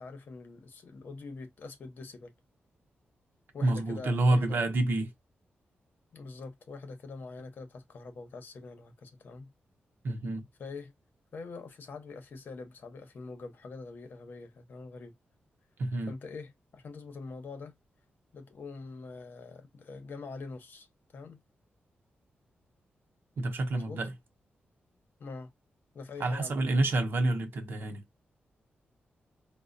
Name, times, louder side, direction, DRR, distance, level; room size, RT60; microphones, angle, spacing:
voice 1, 0.0-2.3 3.5-4.5 6.1-9.5 10.6-10.9 11.3-15.1 16.1-17.7 18.3-20.9 21.1-21.4 23.7-24.0 25.2-25.5 25.9-26.6, left 4 dB, 55° left, 0.9 m, -44 dB
voice 2, 3.6-5.1 10.0-10.4 15.8-16.1 23.4-24.1 26.2-28.0, right 2 dB, 65° right, 0.7 m, -28 dB
4.7 x 2.1 x 2.6 m
wide cardioid pair, 125°, 4 cm